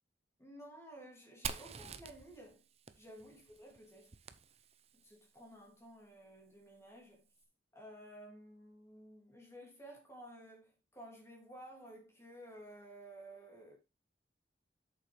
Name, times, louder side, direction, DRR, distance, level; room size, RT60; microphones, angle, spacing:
voice 1, 0.4-2.6 3.0-4.1 4.9-7.3 7.7-13.8, right 1 dB, 15° left, 2.8 m, -54 dB
Fire, 1.4-5.1, right 6 dB, 35° right, 0.6 m, -47 dB
8.3 x 7.2 x 3.4 m
head